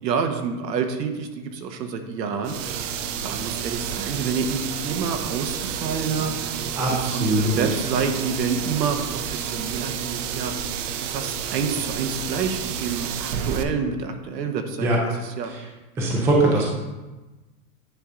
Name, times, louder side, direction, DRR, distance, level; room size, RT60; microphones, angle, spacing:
voice 1, 0.0-2.6 3.2-6.3 6.9-10.5 11.1-14.9 15.2-15.5, right 6 dB, 80° right, 6 dB, 1.1 m, -28 dB
sound 1, 2.4-13.6, right 8 dB, 50° right, 0.6 m, -30 dB
voice 2, 6.7-7.7 14.8-15.0 16.0-16.7, right 1 dB, 5° right, -2 dB, 0.4 m, -21 dB
9.4 x 5.4 x 2.5 m, 1.1 s
hypercardioid pair, 135°, 49 cm